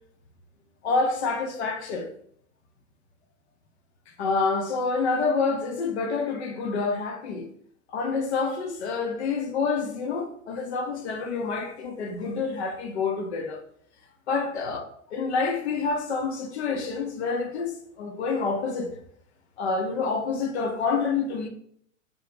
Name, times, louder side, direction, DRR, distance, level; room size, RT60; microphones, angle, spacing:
voice 1, 0.8-2.1 4.2-7.5 7.9-13.6 14.3-14.8 15.1-17.7 18.0-18.9 19.6-21.5, left 4 dB, 60° left, 0.6 m, -27 dB
2.3 x 2.0 x 3.0 m
figure-of-eight pair, 95°, 39 cm